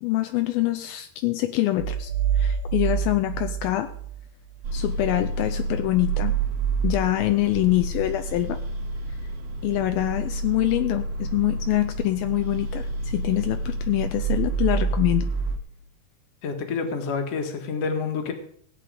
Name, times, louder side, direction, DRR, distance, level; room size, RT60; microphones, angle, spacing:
voice 1, 0.0-2.1 2.4-3.9 4.7-6.3 6.8-8.6 9.6-15.3, left 16 dB, 85° left, 8 dB, 2.1 m, -25 dB
sound 1, 1.8-4.7, right 8 dB, 85° right, 2.1 m, -27 dB
sound 2, 4.6-15.6, right 4 dB, 40° right, 2.3 m, -28 dB
voice 2, 16.4-18.3, left 5 dB, 50° left, 5 dB, 1.9 m, -28 dB
17.0 x 8.6 x 5.0 m, 0.62 s
omnidirectional pair, 4.9 m